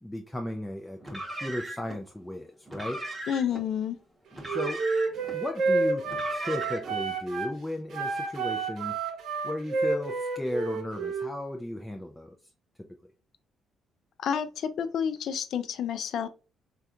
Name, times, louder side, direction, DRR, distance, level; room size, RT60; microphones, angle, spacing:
voice 1, 0.0-3.0 4.5-4.9 5.3-9.0 9.4-12.3 12.8-12.9, left 1 dB, 10° left, 0.4 m, -35 dB
Car, 1.0-2.0 2.7-3.6 4.3-5.4 6.0-7.0, right 1 dB, 15° right, 1.0 m, -38 dB
voice 2, 3.3-4.0 14.2-16.3, left 8 dB, 70° left, 0.4 m, -29 dB
Wind instrument woodwind instrument, 4.4-7.5 7.9-11.3, right 4 dB, 65° right, 0.8 m, -30 dB
3.5 x 2.3 x 2.7 m
cardioid pair, 90°, 0 cm